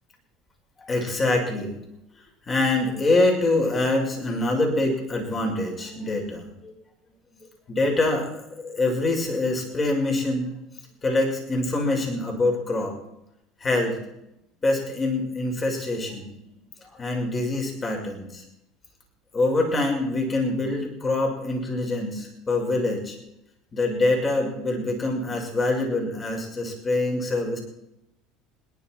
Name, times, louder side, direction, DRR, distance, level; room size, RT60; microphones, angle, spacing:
voice 1, 0.8-1.7 2.5-6.7 7.7-10.5 11.0-12.9 13.6-14.0 14.6-16.4 16.8-18.4 19.3-23.2 23.7-27.6, left 2 dB, 30° left, 1 dB, 5.9 m, -25 dB
27.5 x 11.5 x 4.7 m, 0.83 s
hypercardioid pair, 90°, 0 cm